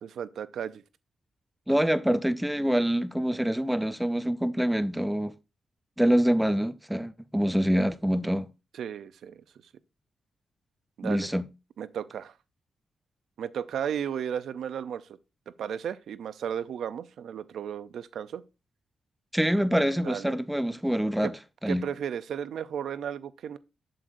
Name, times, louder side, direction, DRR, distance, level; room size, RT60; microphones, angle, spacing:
voice 1, 0.0-0.8 8.7-9.4 11.0-11.3 11.8-12.3 13.4-15.0 15.6-18.4 20.0-20.3 21.2-21.3 21.7-23.6, right 8 dB, 80° right, 0.5 m, -34 dB
voice 2, 1.7-5.3 6.0-8.5 11.0-11.5 19.3-21.3 21.6-21.9, equal, 5° right, 0.3 m, -25 dB
7.8 x 7.6 x 2.6 m
wide cardioid pair, 170°, 0 cm